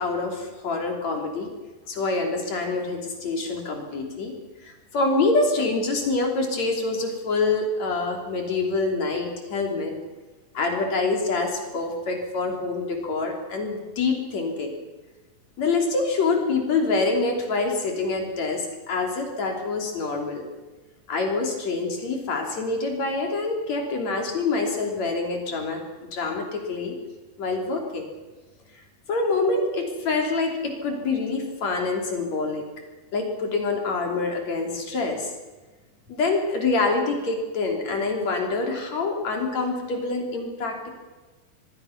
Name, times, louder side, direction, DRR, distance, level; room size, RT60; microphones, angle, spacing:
voice 1, 0.0-1.5 1.9-4.3 4.6-10.0 10.5-14.8 15.6-20.4 21.1-27.0 27.4-28.1 29.1-32.6 33.1-35.3 36.1-41.0, left 3 dB, 50° left, 2 dB, 4.2 m, -26 dB
25.5 x 20.5 x 6.0 m, 1.2 s
omnidirectional pair, 4.3 m